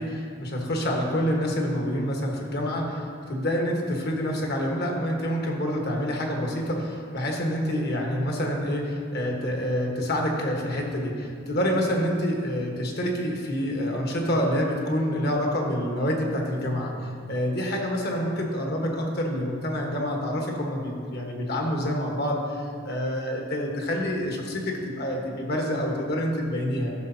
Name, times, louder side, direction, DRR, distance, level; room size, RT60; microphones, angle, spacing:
voice 1, 0.0-16.9 17.3-26.9, equal, 50° left, 0 dB, 1.2 m, -27 dB
14.0 x 6.4 x 2.8 m, 2.3 s
head